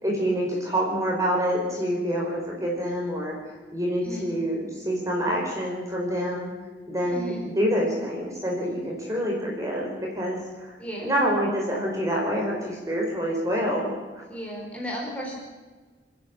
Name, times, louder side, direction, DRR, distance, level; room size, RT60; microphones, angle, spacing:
voice 1, 0.0-3.3 3.7-6.5 6.9-10.7 11.0-13.9, equal, 15° right, -2 dB, 4.8 m, -27 dB
voice 2, 7.1-7.4 10.8-11.1 14.3-15.4, equal, 5° left, -3 dB, 5.0 m, -34 dB
29.0 x 10.5 x 8.7 m, 1.4 s
head